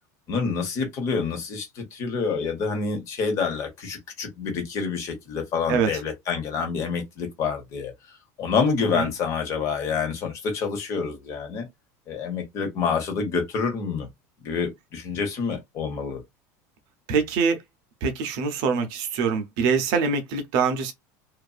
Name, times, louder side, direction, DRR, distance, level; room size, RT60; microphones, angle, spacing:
voice 1, 0.3-7.9 8.4-11.7 12.1-14.1 14.4-16.2, left 5 dB, 35° left, 1.1 m, -27 dB
voice 2, 17.1-17.6 18.0-20.9, right 5 dB, 50° right, 0.7 m, -24 dB
2.5 x 2.5 x 2.4 m
cardioid pair, 165°, 9 cm